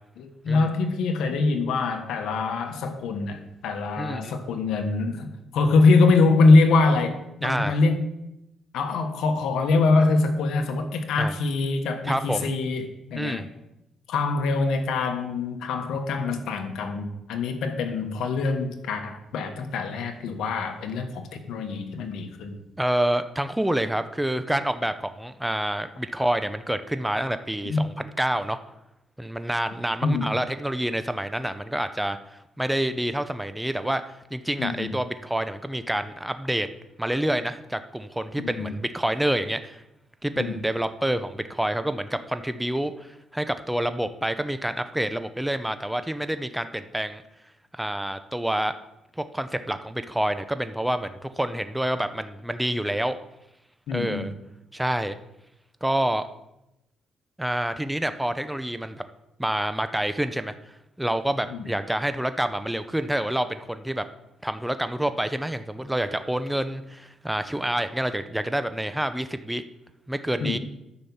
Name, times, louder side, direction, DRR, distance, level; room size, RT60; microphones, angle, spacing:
voice 1, 0.2-7.1 7.4-8.0 8.7-13.5 14.1-22.6 27.6-27.9 30.0-30.3 34.6-34.9 38.4-38.7 40.4-40.6 53.9-54.3 61.5-61.7 70.4-70.6, left 3 dB, 80° left, 6 dB, 1.4 m, -24 dB
voice 2, 4.0-4.3 7.4-7.8 11.2-11.3 12.0-12.5 13.2-13.5 22.8-28.6 29.2-32.2 32.6-34.0 34.3-36.7 37.0-39.8 40.2-47.2 47.7-48.7 49.2-53.2 53.9-54.3 54.7-55.2 55.8-56.3 57.4-59.0 59.4-60.5 61.0-64.0 64.4-69.6 70.1-70.6, right 1 dB, 5° right, 10 dB, 0.7 m, -27 dB
10.0 x 6.0 x 7.2 m, 0.89 s
cardioid pair, 90°, 0 cm